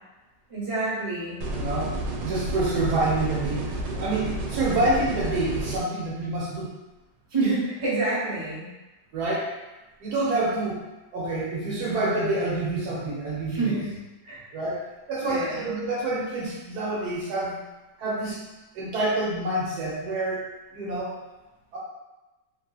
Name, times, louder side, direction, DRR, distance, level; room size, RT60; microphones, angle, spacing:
voice 1, 0.5-1.4 7.3-8.7 13.5-13.9 14.2-14.4 15.2-15.6, right 3 dB, 30° right, -8 dB, 0.6 m, -27 dB
sound 1, 1.4-5.8, right 1 dB, 90° right, 1.3 m, -31 dB
voice 2, 1.5-1.9 2.2-6.7 9.1-9.5 10.0-10.8 11.1-13.8 14.5-14.8 15.1-17.6 18.0-18.4 18.7-20.5 20.7-21.1 21.7-21.8, right 2 dB, 70° right, -6 dB, 1.1 m, -27 dB
3.0 x 2.6 x 2.3 m, 1.1 s
omnidirectional pair, 2.0 m